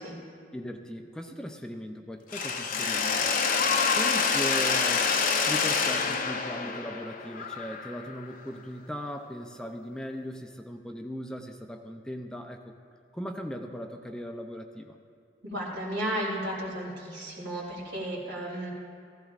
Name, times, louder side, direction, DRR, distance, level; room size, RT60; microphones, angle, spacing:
voice 1, 0.5-3.3 3.9-5.1 5.4-12.6 13.1-15.0, equal, 5° left, 4 dB, 0.4 m, -38 dB
Mechanisms, 2.3-8.2, left 5 dB, 50° left, 0.7 m, -27 dB
voice 2, 15.4-18.7, right 1 dB, 85° right, -4 dB, 3.2 m, -33 dB
15.5 x 14.5 x 2.5 m, 2.3 s
head